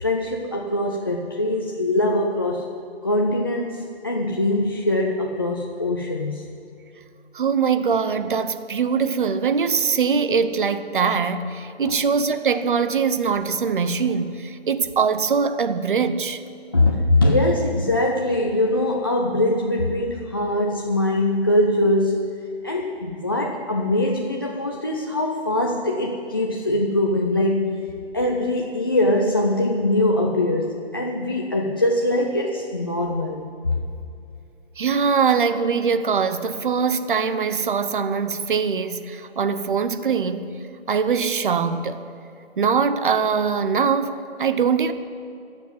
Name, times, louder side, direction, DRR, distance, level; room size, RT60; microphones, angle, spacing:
voice 1, 0.0-2.6 3.0-6.5 11.8-12.0 16.7-22.3 22.6-27.9 28.1-33.7, left 1 dB, 20° left, 0 dB, 0.5 m, -22 dB
voice 2, 7.3-16.4 34.8-40.5 40.9-42.0 42.6-44.9, right 6 dB, 50° right, 11 dB, 0.9 m, -22 dB
14.0 x 7.1 x 9.2 m, 2.5 s
hypercardioid pair, 160°, 32 cm